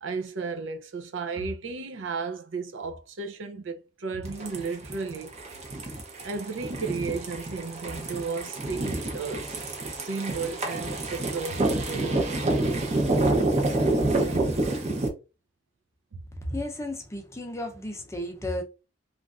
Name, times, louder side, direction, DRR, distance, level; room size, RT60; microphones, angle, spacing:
voice 1, 0.0-5.3 6.2-12.6 14.3-14.5, right 4 dB, 80° right, 0.5 m, -34 dB
sound 1, 4.2-15.1, right 2 dB, 35° right, 0.7 m, -28 dB
voice 2, 16.4-18.6, left 1 dB, 15° left, 0.5 m, -33 dB
3.1 x 2.4 x 2.4 m
head